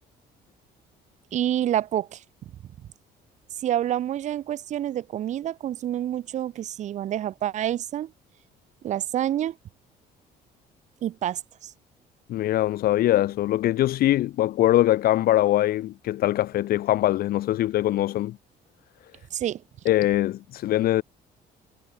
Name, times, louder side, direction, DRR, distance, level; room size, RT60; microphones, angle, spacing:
voice 1, 1.3-2.2 3.6-8.1 8.8-9.6 11.0-11.7 19.3-19.6, right 11 dB, 45° right, 0.4 m, -28 dB
voice 2, 12.3-18.4 19.9-21.0, left 14 dB, 65° left, 0.7 m, -22 dB
cardioid pair, 110°, 17 cm